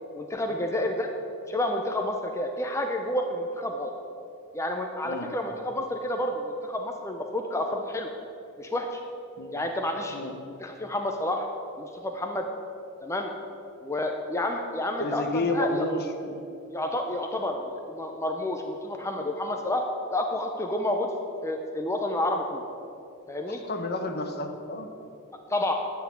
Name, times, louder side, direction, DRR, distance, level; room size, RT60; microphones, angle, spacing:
voice 1, 0.1-1.1 1.5-3.9 4.5-8.1 8.6-9.0 9.5-10.2 10.6-11.5 11.8-12.5 13.0-13.3 13.8-15.8 16.7-19.8 20.1-21.1 21.4-22.6 23.3-23.6 25.5-25.7, left 1 dB, 15° left, 3 dB, 0.6 m, -29 dB
voice 2, 15.0-16.4 23.5-24.9, left 2 dB, 50° left, 6 dB, 0.9 m, -30 dB
9.6 x 5.9 x 8.2 m, 2.7 s
head